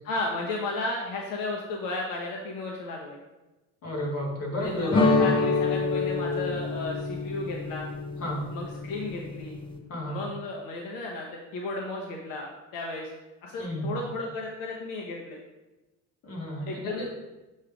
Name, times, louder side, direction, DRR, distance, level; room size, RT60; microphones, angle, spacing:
voice 1, 0.1-3.2 4.6-7.9 8.5-9.6 10.1-13.1 13.4-15.4 16.7-17.0, left 2 dB, 80° left, -1 dB, 1.0 m, -34 dB
voice 2, 3.8-5.4 8.2-8.4 9.9-10.2 13.6-13.9 16.2-16.7, equal, 45° left, -3 dB, 2.2 m, -31 dB
sound 1, 4.9-9.8, left 3 dB, 15° left, 0.5 m, -27 dB
7.6 x 3.2 x 4.9 m, 1.1 s
cardioid pair, 150°, 33 cm